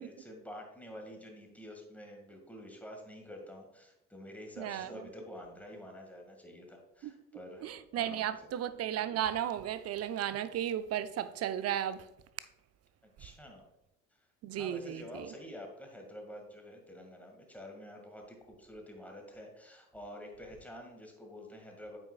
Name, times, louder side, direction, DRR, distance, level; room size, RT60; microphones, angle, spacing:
voice 1, 0.0-8.5 13.0-13.7 14.5-22.0, left 1 dB, 5° left, 1.9 m, -48 dB
voice 2, 4.6-5.1 7.0-7.1 7.6-12.1 14.4-15.3, right 10 dB, 40° right, 0.5 m, -35 dB
8.4 x 6.2 x 2.3 m
figure-of-eight pair, 50°, 40 cm